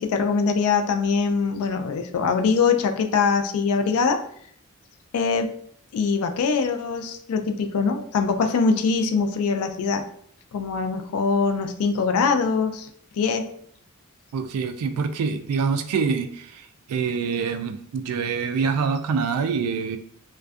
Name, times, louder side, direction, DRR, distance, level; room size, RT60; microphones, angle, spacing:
voice 1, 0.0-4.2 5.1-5.5 5.9-10.0 10.5-12.9 13.1-13.5, left 5 dB, 75° left, 5 dB, 0.3 m, -23 dB
voice 2, 14.3-20.0, right 5 dB, 85° right, 11 dB, 0.3 m, -25 dB
2.5 x 2.2 x 2.3 m, 0.64 s
head